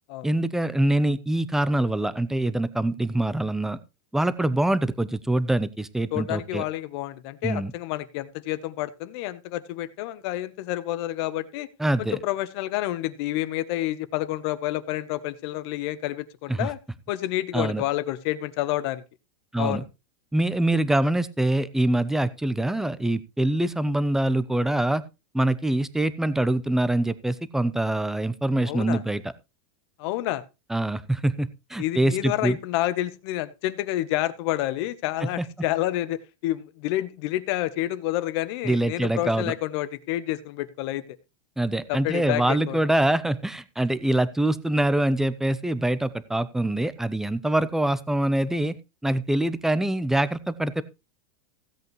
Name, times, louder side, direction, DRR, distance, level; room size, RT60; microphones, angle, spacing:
voice 1, 0.2-3.8 4.1-6.6 7.4-7.7 11.8-12.2 16.5-16.7 17.5-17.8 19.5-19.8 20.3-25.0 25.3-29.2 30.7-32.6 35.2-35.4 38.6-39.5 41.6-48.7 49.0-50.8, right 1 dB, ahead, 16 dB, 0.6 m, -24 dB
voice 2, 6.1-11.7 12.0-16.8 17.1-19.0 19.6-19.8 28.7-29.0 30.0-30.4 31.8-41.0 41.9-42.8, left 15 dB, 55° left, 14 dB, 1.0 m, -29 dB
16.0 x 8.2 x 3.1 m, 0.26 s
supercardioid pair, 145°, 17 cm